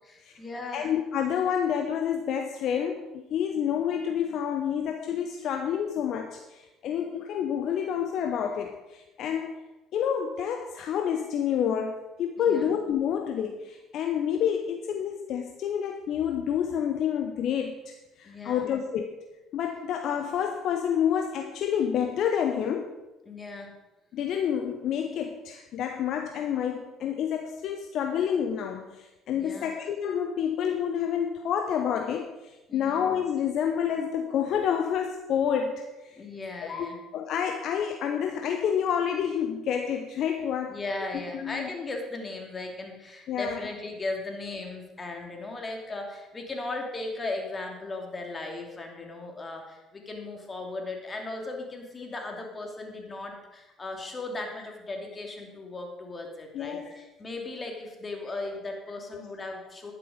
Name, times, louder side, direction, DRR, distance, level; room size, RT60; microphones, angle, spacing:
voice 1, 0.0-0.9 12.4-12.7 18.2-18.7 23.3-23.7 29.3-29.7 32.7-33.0 36.2-37.0 40.7-59.9, left 2 dB, 30° left, 2 dB, 2.8 m, -37 dB
voice 2, 0.7-9.6 9.9-19.2 19.5-23.0 24.1-36.2 36.6-36.9 37.1-40.8 41.3-41.7 43.3-43.7 56.5-56.9 59.1-59.2, left 8 dB, 55° left, 5 dB, 0.8 m, -29 dB
11.0 x 9.7 x 5.1 m, 1.1 s
figure-of-eight pair, 55°, 0 cm